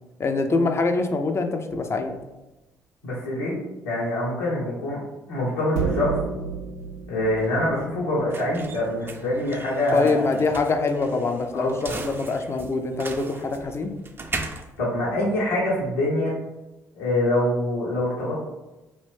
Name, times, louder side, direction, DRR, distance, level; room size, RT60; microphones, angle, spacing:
voice 1, 0.2-2.1 9.9-13.9, left 3 dB, 30° left, 6 dB, 0.4 m, -24 dB
sound 1, 1.7-2.1 5.7-8.1, right 5 dB, 85° right, 0.4 m, -31 dB
voice 2, 3.0-5.0 5.3-6.2 7.1-10.4 11.5-12.0 14.8-16.3 17.0-18.3, left 1 dB, 85° left, -8 dB, 1.3 m, -25 dB
sound 2, 6.8-15.9, right 3 dB, 25° right, 0.4 m, -39 dB
2.7 x 2.6 x 3.4 m, 1.0 s
figure-of-eight pair, 45°, 9 cm